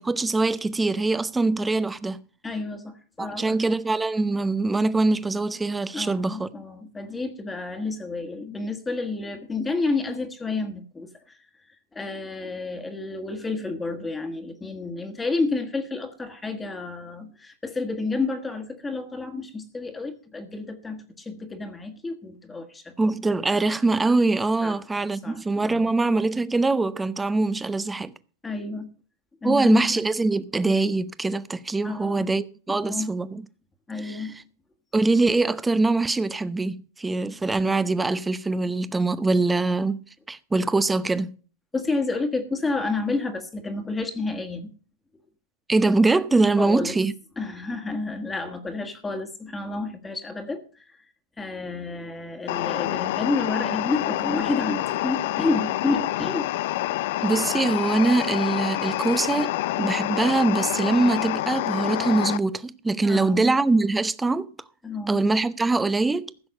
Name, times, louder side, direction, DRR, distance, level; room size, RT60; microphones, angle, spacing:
voice 1, 0.0-2.2 3.2-6.5 23.0-28.1 29.4-33.4 34.0-34.3 34.9-40.0 40.3-41.3 45.7-47.1 57.2-64.5 65.1-66.2, right 3 dB, 10° right, 0.7 m, -23 dB
voice 2, 2.4-3.6 5.9-11.4 11.9-22.9 24.6-24.8 25.2-25.9 28.4-28.9 29.4-30.1 31.8-32.3 32.7-33.1 33.9-34.4 41.7-44.7 46.6-47.0 47.4-51.0 51.4-56.5 63.0-63.6 64.8-65.3, left 3 dB, 10° left, 1.6 m, -30 dB
sound 1, 52.5-62.4, left 16 dB, 65° left, 0.5 m, -27 dB
15.0 x 6.3 x 6.5 m
hypercardioid pair, 120°, 0 cm